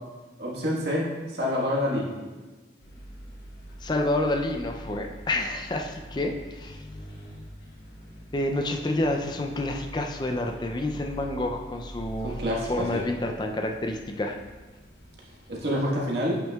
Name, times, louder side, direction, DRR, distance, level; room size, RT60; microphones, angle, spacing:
voice 1, 0.4-2.1 12.2-13.0 15.5-16.4, equal, 65° right, -4 dB, 1.4 m, -27 dB
sound 1, 2.8-15.8, equal, 65° left, 1.3 m, -44 dB
voice 2, 3.8-6.9 8.3-12.4 12.6-14.4, left 1 dB, 25° left, 3 dB, 0.4 m, -29 dB
8.8 x 5.8 x 2.3 m, 1.2 s
head